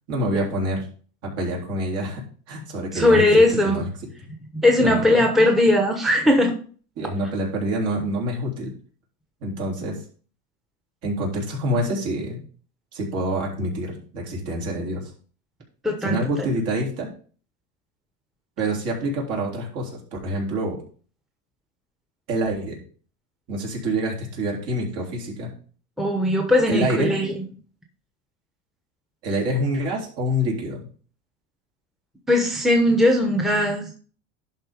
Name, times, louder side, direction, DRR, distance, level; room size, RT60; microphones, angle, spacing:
voice 1, 0.1-0.9 1.4-2.2 2.5-3.2 3.6-3.9 4.8-5.2 7.0-8.7 9.4-10.0 11.0-12.4 12.9-15.1 16.0-17.1 18.6-20.8 22.3-22.8 23.5-25.5 26.7-27.1 29.2-30.8, right 1 dB, 55° right, -2 dB, 3.7 m, -26 dB
voice 2, 2.9-3.8 4.5-6.5 15.8-16.2 26.0-27.3 32.3-33.9, left 1 dB, ahead, 3 dB, 1.0 m, -19 dB
11.0 x 4.0 x 5.1 m, 0.42 s
cardioid pair, 150°, 29 cm